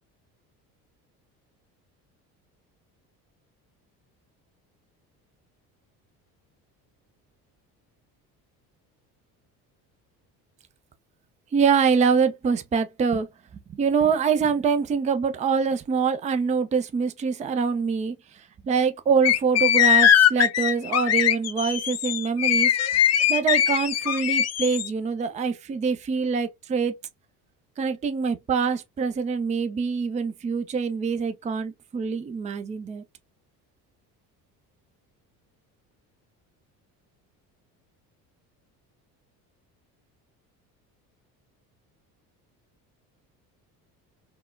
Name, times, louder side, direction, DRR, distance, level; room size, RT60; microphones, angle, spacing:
voice 1, 11.5-13.3 13.5-22.7 23.3-26.9 27.8-33.0, right 5 dB, 15° right, 0.4 m, -25 dB
sound 1, 19.2-24.9, left 10 dB, 35° left, 0.5 m, -21 dB
3.6 x 2.1 x 2.2 m
hypercardioid pair, 60°, 47 cm